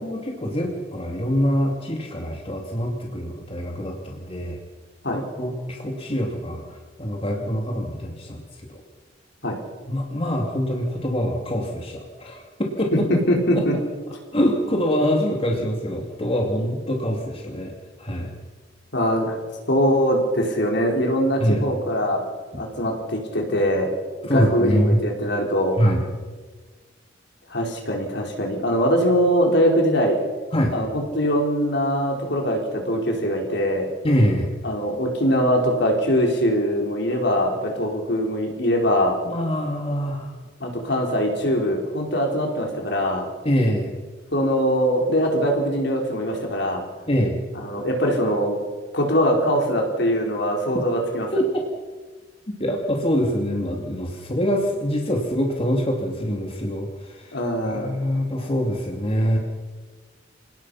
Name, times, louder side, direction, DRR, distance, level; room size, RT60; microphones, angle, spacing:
voice 1, 0.0-4.6 5.1-8.4 8.7-8.8 9.9-13.0 13.6-13.7 14.3-17.7 18.0-18.3 21.4-21.7 22.5-22.6 24.3-25.0 25.8-26.0 30.5-30.7 34.0-34.5 39.3-40.3 43.4-43.9 47.1-47.4 51.3-51.6 52.6-57.3 57.6-59.4, equal, 30° left, 1 dB, 2.5 m, -24 dB
voice 2, 13.1-13.8 18.9-19.4 19.7-22.2 22.6-23.9 24.2-25.8 27.5-30.2 30.7-33.9 34.6-39.2 40.6-43.3 44.3-46.8 47.5-48.5 48.9-51.3 57.3-58.0, equal, 65° left, 1 dB, 4.7 m, -22 dB
27.5 x 18.5 x 5.8 m, 1.4 s
head